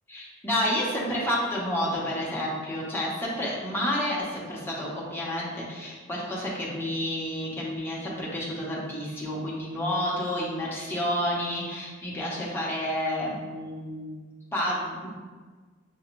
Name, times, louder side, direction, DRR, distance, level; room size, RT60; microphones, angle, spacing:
voice 1, 0.1-15.1, left 1 dB, 10° left, -6 dB, 0.9 m, -30 dB
6.0 x 2.3 x 3.0 m, 1.4 s
head